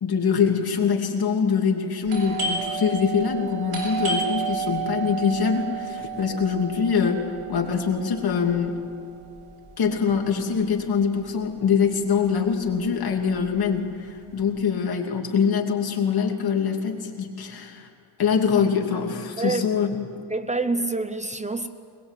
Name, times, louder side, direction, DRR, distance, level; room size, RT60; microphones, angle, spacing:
voice 1, 0.0-8.7 9.8-17.9 18.2-19.9, left 6 dB, 65° left, 2.9 m, -24 dB
Doorbell, 2.0-11.4 11.7-11.8 12.4-12.8 13.1-14.5, right 5 dB, 65° right, 7.3 m, -32 dB
voice 2, 20.3-21.7, right 3 dB, 15° right, 0.8 m, -26 dB
21.5 x 21.5 x 8.4 m
wide cardioid pair, 125°, 40 cm